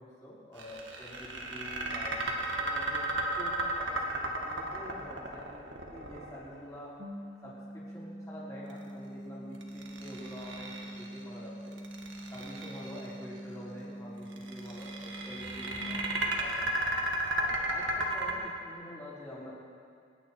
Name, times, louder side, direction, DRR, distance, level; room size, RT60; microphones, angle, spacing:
voice 1, 0.0-2.3 2.6-3.0 3.4-5.6 5.9-6.9 7.4-11.8 12.3-16.7 17.3-19.5, left 1 dB, 15° left, -8 dB, 4.4 m, -47 dB
sound 1, 0.6-6.8 9.6-11.2 11.7-13.1 14.3-18.3, right 1 dB, 80° right, 1.9 m, -34 dB
sound 2, 7.0-15.8, equal, 45° right, 1.5 m, -44 dB
27.0 x 10.0 x 4.6 m, 2.4 s
head